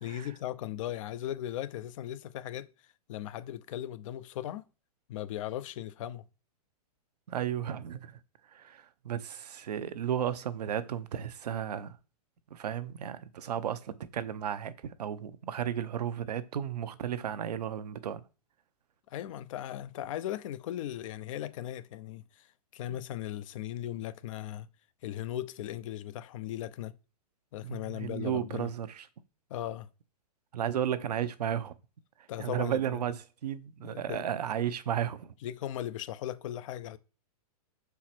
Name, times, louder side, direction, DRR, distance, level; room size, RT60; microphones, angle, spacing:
voice 1, 0.0-2.7 3.1-4.6 5.1-6.2 19.1-24.7 25.0-26.9 27.5-28.7 29.5-29.9 32.3-33.0 33.8-34.2 35.4-37.0, left 12 dB, 55° left, 0.6 m, -38 dB
voice 2, 7.3-8.2 8.5-12.0 12.5-18.2 22.9-23.0 27.6-29.1 30.5-31.7 32.4-35.3, right 9 dB, 85° right, 0.7 m, -34 dB
6.0 x 4.6 x 4.3 m
hypercardioid pair, 140°, 20 cm